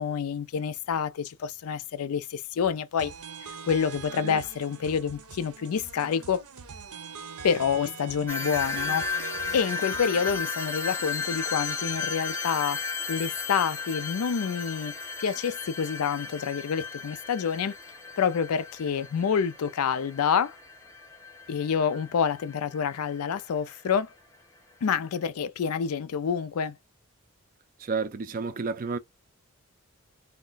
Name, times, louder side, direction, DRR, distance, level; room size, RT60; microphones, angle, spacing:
voice 1, 0.0-3.1 3.4-6.4 7.4-9.1 9.5-12.8 13.1-17.7 18.2-20.6 21.5-24.1 24.8-26.8, left 7 dB, 80° left, 0.4 m, -28 dB
sound 1, 3.0-10.4, right 6 dB, 85° right, 0.6 m, -43 dB
sound 2, 8.3-23.2, left 4 dB, 10° left, 0.6 m, -35 dB
voice 2, 27.8-29.0, right 4 dB, 40° right, 0.4 m, -31 dB
2.4 x 2.2 x 3.8 m
head